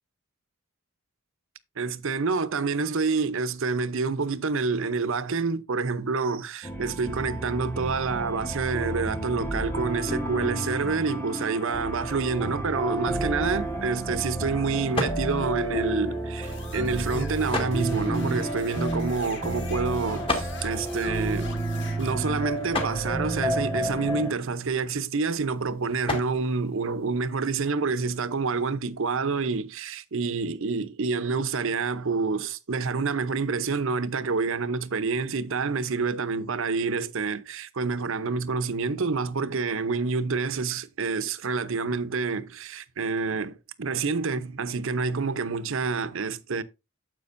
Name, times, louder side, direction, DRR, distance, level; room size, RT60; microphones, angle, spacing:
voice 1, 1.8-21.5 22.0-46.6, right 4 dB, 65° right, 0.7 m, -28 dB
sound 1, 6.6-24.3, right 1 dB, 10° left, 1.1 m, -31 dB
sound 2, 13.3-27.7, left 2 dB, 25° left, 2.0 m, -38 dB
sound 3, 16.4-22.1, left 3 dB, 60° left, 1.8 m, -43 dB
9.7 x 7.7 x 2.6 m
head